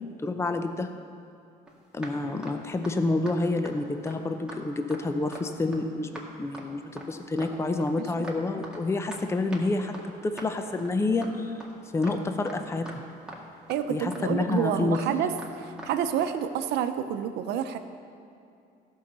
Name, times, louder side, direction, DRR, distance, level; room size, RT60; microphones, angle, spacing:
voice 1, 0.2-0.9 1.9-9.9 10.2-11.6 11.9-13.0 13.9-15.0, left 2 dB, 15° left, 7 dB, 0.6 m, -28 dB
sound 1, 1.7-1.8 2.0-2.2 2.4-2.6 2.8-2.9 3.3-3.4 3.6-3.8 4.1-4.2 4.5-4.6 4.9-5.0 5.3-5.4 5.7-5.8 6.2-6.3 6.5-6.7 7.0-7.1 7.4-7.6 7.8-8.4 8.6-8.8 9.1-9.2 9.5-9.6 9.9-10.1 10.4-10.5 10.8-10.9 11.2-11.3 11.6-11.7 12.0-12.2 12.5-12.6 12.9-13.0 13.3-13.4 13.7-13.8 14.1-14.2 14.5-14.6 14.9-15.1 15.4-15.5 15.8-15.9 16.2-16.3, right 1 dB, 5° right, 2.0 m, -42 dB
voice 2, 13.7-17.8, right 9 dB, 80° right, 9 dB, 0.7 m, -29 dB
14.5 x 5.6 x 6.8 m, 2.5 s
cardioid pair, 110°, 17 cm